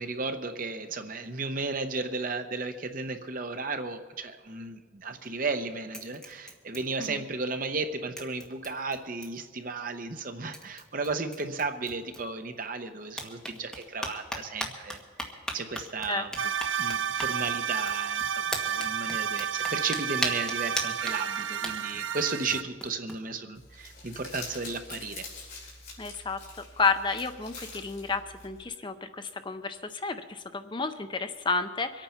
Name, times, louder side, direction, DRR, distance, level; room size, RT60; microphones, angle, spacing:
voice 1, 0.0-15.0 15.5-16.3 16.8-25.3, right 3 dB, 45° right, 8 dB, 0.9 m, -34 dB
sound 1, 5.0-5.6 5.9-7.5 7.7-7.8 8.2-9.5 10.2-10.3 10.5-12.7 13.1-23.2, equal, 5° left, 1.4 m, -39 dB
sound 2, 16.4-22.6, right 8 dB, 80° right, 0.6 m, -31 dB
Crumpling crinkling, 23.5-28.6, left 3 dB, 50° left, 4.1 m, -45 dB
voice 2, 26.0-26.4 26.8-32.0, left 4 dB, 25° left, 9 dB, 0.6 m, -31 dB
24.0 x 9.0 x 5.7 m, 1.5 s
head